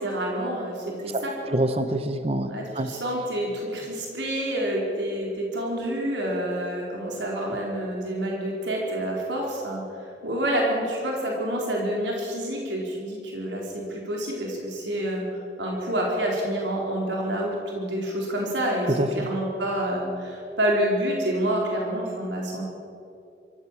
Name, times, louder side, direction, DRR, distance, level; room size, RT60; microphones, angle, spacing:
voice 1, 0.0-1.3 2.5-15.3 15.6-22.7, right 1 dB, 90° right, -2 dB, 4.4 m, -28 dB
voice 2, 1.1-2.9 18.9-19.3, right 1 dB, 35° right, 9 dB, 0.8 m, -26 dB
24.0 x 15.0 x 7.6 m, 2.6 s
head